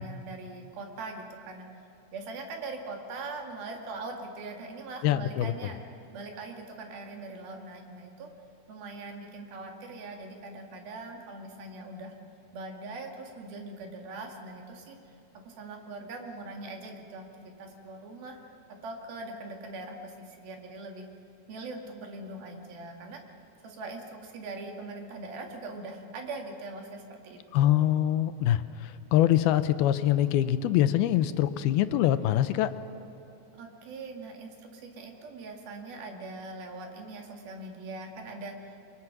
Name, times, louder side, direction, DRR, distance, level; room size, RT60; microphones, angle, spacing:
voice 1, 0.0-1.7 2.1-5.8 6.1-8.3 8.7-12.1 12.5-15.0 15.5-17.3 17.6-18.4 18.8-21.1 21.5-23.2 23.6-27.9 33.5-38.8, right 2 dB, 70° right, 2 dB, 4.1 m, -41 dB
voice 2, 5.0-5.5 27.5-32.7, left 12 dB, 80° left, 12 dB, 2.6 m, -24 dB
29.5 x 23.0 x 6.0 m, 2.8 s
omnidirectional pair, 4.4 m